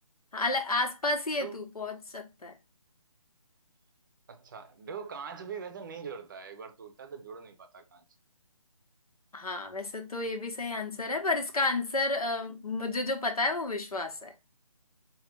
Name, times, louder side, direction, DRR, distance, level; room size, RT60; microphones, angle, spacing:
voice 1, 0.3-2.5 9.3-14.3, left 2 dB, 90° left, 1.0 m, -31 dB
voice 2, 4.3-8.0, right 6 dB, 35° right, 0.6 m, -42 dB
4.8 x 2.3 x 3.3 m
figure-of-eight pair, 155°, 18 cm